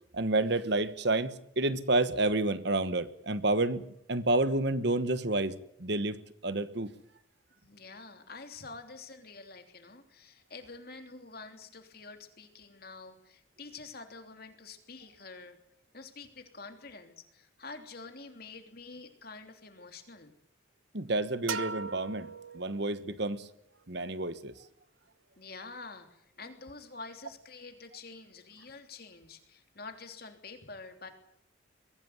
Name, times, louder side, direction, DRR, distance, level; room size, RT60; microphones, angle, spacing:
voice 1, 0.1-3.8 4.1-6.9 20.9-23.5 23.9-24.5, right 2 dB, 55° right, 13 dB, 1.2 m, -29 dB
voice 2, 7.6-15.6 15.9-20.3 25.4-31.1, left 3 dB, 50° left, 6 dB, 3.2 m, -47 dB
sound 1, 21.5-23.2, right 5 dB, 90° right, 1.1 m, -38 dB
23.0 x 16.5 x 9.3 m, 0.75 s
head